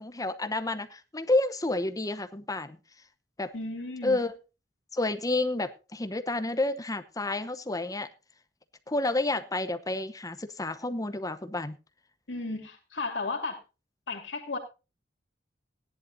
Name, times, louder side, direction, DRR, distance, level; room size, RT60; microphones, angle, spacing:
voice 1, 0.0-2.8 3.4-3.5 4.0-4.3 4.9-8.1 8.9-11.7, left 2 dB, 20° left, 10 dB, 0.9 m, -30 dB
voice 2, 3.5-4.2 12.3-13.6 14.1-14.6, left 3 dB, 80° left, 3 dB, 2.7 m, -34 dB
17.5 x 11.0 x 2.7 m, 0.30 s
head